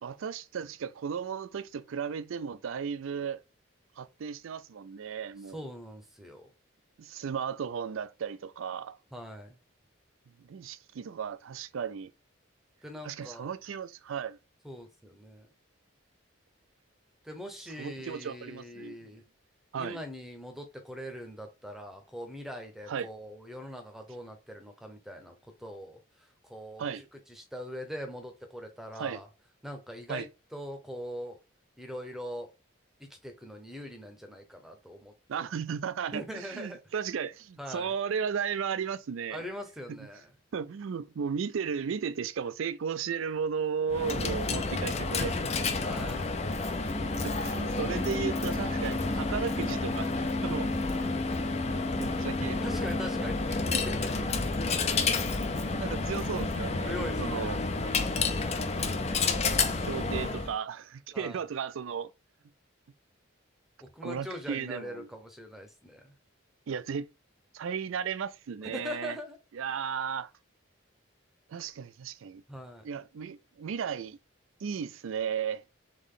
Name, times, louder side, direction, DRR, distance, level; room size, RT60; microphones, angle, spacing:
voice 1, 0.0-3.4 4.0-5.6 7.0-9.0 10.4-12.1 13.0-14.4 17.8-19.0 19.7-20.0 22.9-23.1 26.8-27.0 29.0-29.2 30.1-30.3 35.3-39.4 39.9-40.0 40.5-45.8 47.2-50.1 50.4-50.8 51.7-52.6 55.7-57.6 59.8-62.1 64.0-65.1 66.7-67.1 67.5-69.2 69.5-70.3 71.5-72.4 72.8-74.2 74.6-75.6, right 7 dB, 75° right, 0.4 m, -35 dB
voice 2, 5.5-6.5 9.1-9.6 12.8-13.5 14.6-15.5 17.2-19.2 19.8-29.3 29.6-30.3 30.5-31.4 31.8-32.5 33.0-35.4 36.1-36.8 37.6-37.9 39.3-40.3 45.9-46.4 52.6-54.3 56.8-58.4 61.1-61.4 63.8-66.1 68.6-69.4 72.5-72.8, equal, ahead, 0.7 m, -42 dB
Coin (dropping), 43.9-60.5, left 3 dB, 30° left, 0.4 m, -30 dB
3.7 x 3.6 x 3.7 m
head